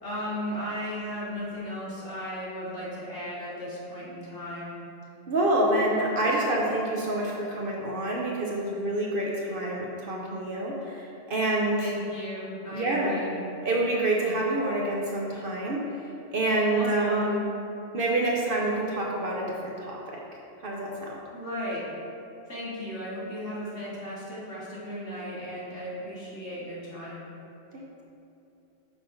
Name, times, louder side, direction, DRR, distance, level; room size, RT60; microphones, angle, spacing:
voice 1, 0.0-4.8 11.8-13.4 16.7-17.5 21.3-21.9 22.5-27.2, equal, 65° left, -8 dB, 2.0 m, -35 dB
voice 2, 5.3-11.8 12.7-13.2 13.6-15.8 16.3-17.3 17.9-20.2 20.6-21.2 27.7-28.0, right 1 dB, 55° right, -2 dB, 0.8 m, -27 dB
5.9 x 3.6 x 5.2 m, 2.8 s
omnidirectional pair, 1.3 m